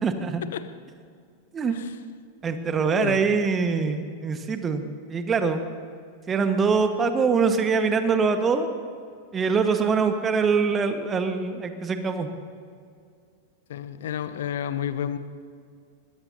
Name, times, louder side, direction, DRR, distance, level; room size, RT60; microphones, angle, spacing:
voice 1, 0.0-0.4 1.5-1.8 2.4-5.6 6.3-8.7 9.3-12.3, right 5 dB, 20° right, 7 dB, 1.5 m, -23 dB
voice 2, 13.7-15.2, left 9 dB, 60° left, 11 dB, 0.9 m, -30 dB
24.0 x 21.0 x 2.9 m, 2.3 s
figure-of-eight pair, 90°, 0 cm